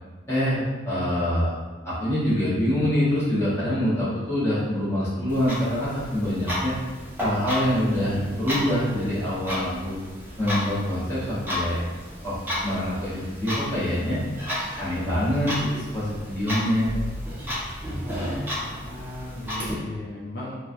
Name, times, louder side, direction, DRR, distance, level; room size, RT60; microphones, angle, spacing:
voice 1, 0.3-1.5 1.8-6.7 7.2-9.9 10.4-11.8 12.2-12.3 12.6-14.2 14.8-17.0, equal, 15° left, -11 dB, 1.0 m, -25 dB
Clock, 5.3-19.7, left 1 dB, 10° right, 0.7 m, -33 dB
voice 2, 18.0-20.6, left 1 dB, 55° left, -5 dB, 0.4 m, -37 dB
3.1 x 2.2 x 2.5 m, 1.3 s
head